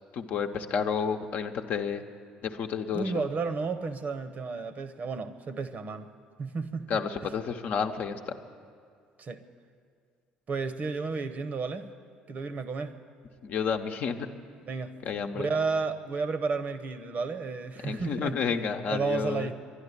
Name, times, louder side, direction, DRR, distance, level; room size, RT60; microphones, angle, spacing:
voice 1, 0.1-2.0 2.4-3.3 6.9-8.3 13.4-14.3 15.0-15.5 17.8-19.5, left 6 dB, 60° left, 5 dB, 0.9 m, -30 dB
voice 2, 2.9-6.1 6.4-7.0 9.2-9.4 10.5-11.9 12.3-13.0 14.7-14.9 15.3-18.6 18.9-19.5, right 4 dB, 45° right, 10 dB, 0.9 m, -32 dB
11.5 x 11.5 x 9.8 m, 2.2 s
hypercardioid pair, 60°, 4 cm